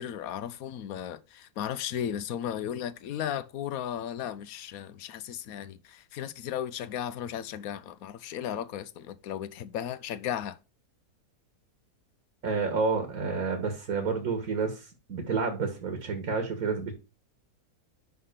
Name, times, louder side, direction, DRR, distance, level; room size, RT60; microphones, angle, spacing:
voice 1, 0.0-10.6, left 9 dB, 65° left, 1.1 m, -35 dB
voice 2, 12.4-16.9, right 4 dB, 65° right, 1.9 m, -30 dB
5.7 x 5.5 x 6.6 m
omnidirectional pair, 1.7 m